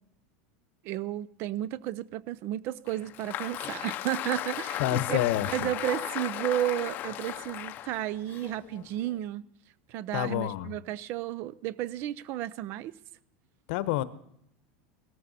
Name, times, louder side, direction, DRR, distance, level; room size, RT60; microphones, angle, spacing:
voice 1, 0.8-9.4 9.9-13.0, right 13 dB, 45° right, 0.5 m, -33 dB
Applause, 2.9-9.2, left 13 dB, 35° left, 0.6 m, -36 dB
voice 2, 4.8-5.7 10.1-10.7 13.7-14.0, left 13 dB, 60° left, 0.9 m, -28 dB
18.0 x 14.0 x 4.2 m
supercardioid pair, 160°, 6 cm